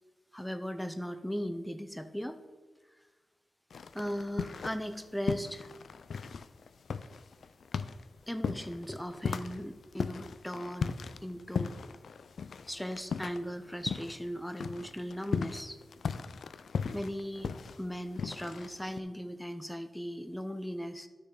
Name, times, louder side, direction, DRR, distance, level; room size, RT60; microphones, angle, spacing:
voice 1, 0.3-2.4 3.9-5.7 8.3-11.7 12.7-15.8 16.9-21.1, equal, 5° left, 9 dB, 0.6 m, -38 dB
sound 1, 3.7-5.0 5.3-14.3 14.5-19.0, left 5 dB, 80° left, 0.4 m, -37 dB
12.0 x 6.6 x 3.9 m, 1.4 s
wide cardioid pair, 130°, 0 cm